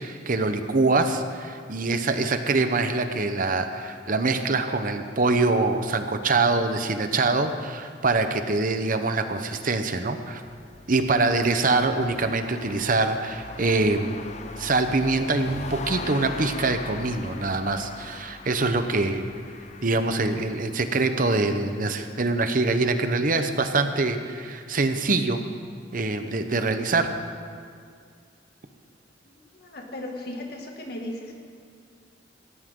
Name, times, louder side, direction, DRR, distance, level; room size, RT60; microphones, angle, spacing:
voice 1, 0.0-10.4 10.9-14.1 14.6-19.3 19.8-25.4 25.9-27.1, right 3 dB, 45° right, 8 dB, 0.9 m, -24 dB
sound 1, 10.4-20.9, left 3 dB, 40° left, 0.6 m, -40 dB
voice 2, 29.3-31.4, left 1 dB, 60° left, 1 dB, 2.1 m, -37 dB
18.0 x 16.0 x 3.8 m, 2.2 s
head